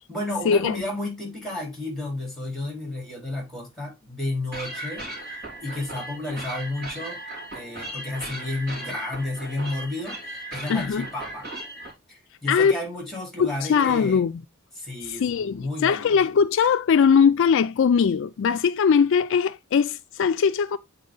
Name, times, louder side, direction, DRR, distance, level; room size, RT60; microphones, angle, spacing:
voice 1, 0.1-7.2 7.5-11.5 12.1-14.2 14.8-16.1, left 2 dB, ahead, 4.0 m, -32 dB
sound 1, 4.5-11.9, right 1 dB, 45° right, 3.2 m, -37 dB
voice 2, 10.7-11.1 12.5-12.8 13.4-14.3 15.0-20.8, left 6 dB, 60° left, 0.3 m, -20 dB
8.6 x 4.3 x 3.8 m
head